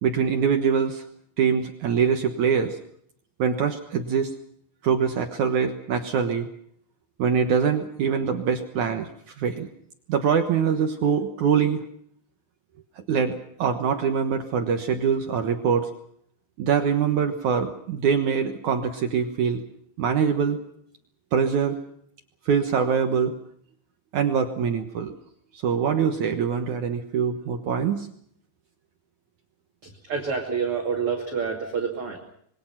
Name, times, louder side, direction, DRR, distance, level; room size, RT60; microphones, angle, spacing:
voice 1, 0.0-1.0 1.4-2.8 3.4-4.3 4.8-6.5 7.2-9.1 9.4-9.7 10.1-11.8 13.1-15.9 16.6-19.6 20.0-20.6 21.3-21.8 22.5-23.3 24.1-25.1 25.5-28.1, right 7 dB, 75° right, 6 dB, 1.7 m, -23 dB
voice 2, 30.1-32.2, right 6 dB, 35° right, 0 dB, 2.8 m, -27 dB
26.5 x 22.5 x 6.0 m, 0.68 s
omnidirectional pair, 5.4 m